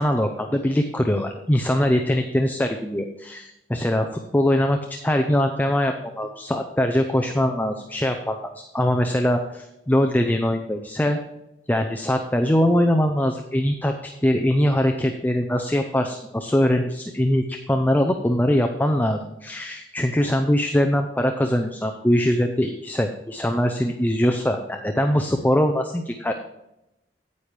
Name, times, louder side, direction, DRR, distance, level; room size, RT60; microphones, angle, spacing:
voice 1, 0.0-4.1 4.3-11.2 11.7-26.3, left 1 dB, 10° left, 5 dB, 0.5 m, -22 dB
9.5 x 8.9 x 3.3 m, 0.90 s
head